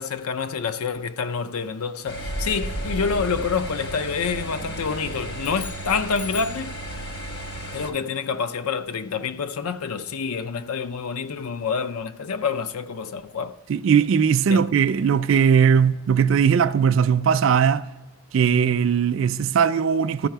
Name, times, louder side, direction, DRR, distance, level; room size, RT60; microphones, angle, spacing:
voice 1, 0.0-6.7 7.7-13.6 14.5-14.6, left 5 dB, 80° left, 0.5 m, -27 dB
sound 1, 2.1-7.9, right 1 dB, 50° left, 1.1 m, -33 dB
sound 2, 5.4-6.7, left 7 dB, 30° left, 0.7 m, -40 dB
voice 2, 13.7-17.8 18.3-20.3, right 7 dB, 60° right, 0.3 m, -19 dB
13.5 x 4.8 x 4.5 m
head